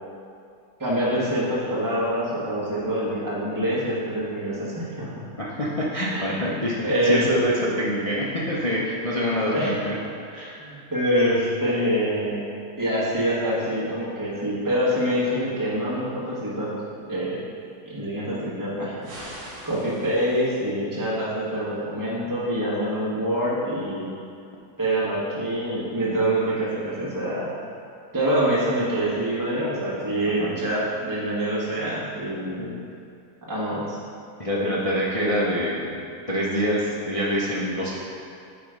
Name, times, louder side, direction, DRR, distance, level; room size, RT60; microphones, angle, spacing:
voice 1, 0.8-5.1 6.1-7.3 9.5-9.8 10.6-12.4 12.8-16.7 17.1-17.4 17.8-18.9 19.6-24.1 24.8-27.5 28.1-32.8 33.5-34.0, equal, 10° right, -8 dB, 1.3 m, -25 dB
voice 2, 5.4-10.0 10.3-10.6 30.4-30.6 34.4-36.0 36.3-37.9, equal, 50° left, -6 dB, 0.4 m, -25 dB
sound 1, 19.0-20.6, right 1 dB, 65° right, 1.9 m, -41 dB
9.1 x 3.1 x 5.1 m, 2.4 s
omnidirectional pair, 1.8 m